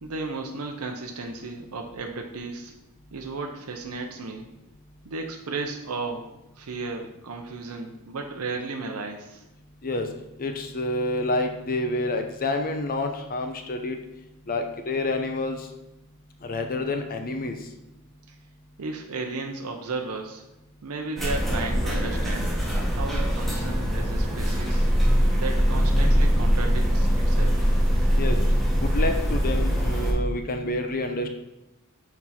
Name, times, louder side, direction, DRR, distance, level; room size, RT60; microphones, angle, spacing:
voice 1, 0.0-2.7 3.1-4.5 5.0-6.3 6.6-9.4 18.3-18.4 18.8-20.4 20.8-22.5 22.9-24.9 25.3-27.8, right 3 dB, 75° right, 2 dB, 0.6 m, -34 dB
voice 2, 10.4-14.0 14.5-15.7 16.4-17.6 28.2-28.4 28.8-31.3, left 2 dB, 40° left, 6 dB, 0.6 m, -28 dB
sound 1, 21.2-30.1, equal, ahead, 1.3 m, -22 dB
6.2 x 4.5 x 4.2 m, 0.94 s
head